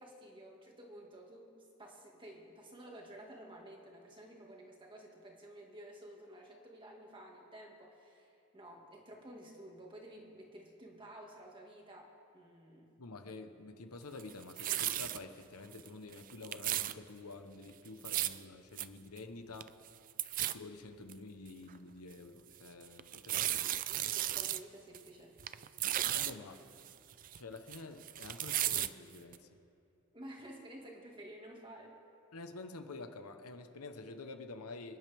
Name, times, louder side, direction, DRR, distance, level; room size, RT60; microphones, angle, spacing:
voice 1, 0.0-12.9 23.9-25.3 30.1-31.9, right 1 dB, 20° right, 0 dB, 1.9 m, -52 dB
voice 2, 13.0-19.7 20.4-23.7 26.1-26.6 27.3-29.5 32.3-35.0, left 3 dB, 80° left, 7 dB, 1.0 m, -48 dB
sound 1, 14.2-15.2 15.7-15.9 16.1-16.9 17.9-18.4 18.8-18.9 19.2-19.3 19.5-19.9 20.2-20.5 21.1-21.2 21.7-21.8 23.0-24.6 24.9-25.1 25.4-26.3 26.8-27.8 28.0-28.9 29.3-29.4, right 13 dB, 35° right, 0.3 m, -35 dB
26.5 x 11.0 x 3.5 m, 2.8 s
head